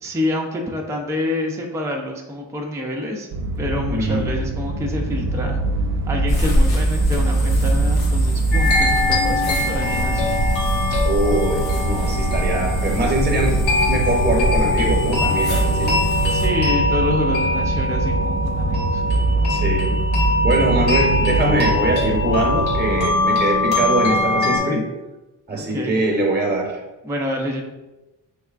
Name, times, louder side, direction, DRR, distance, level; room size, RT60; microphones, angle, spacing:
voice 1, 0.0-3.3 3.6-5.6 6.1-10.3 16.3-19.0 25.5-26.0 27.0-27.6, left 1 dB, 5° right, 1 dB, 0.5 m, -27 dB
sound 1, 3.3-23.1, right 2 dB, 75° right, 0.6 m, -23 dB
voice 2, 3.9-4.3 11.0-16.0 19.5-20.0 20.4-24.9 25.5-26.8, right 2 dB, 20° right, 0 dB, 0.9 m, -22 dB
sound 2, 6.3-16.5, left 1 dB, 60° left, 0.9 m, -26 dB
sound 3, 8.5-24.6, left 2 dB, 75° left, 1.3 m, -23 dB
3.5 x 3.3 x 2.3 m, 1.1 s
cardioid pair, 65°, 44 cm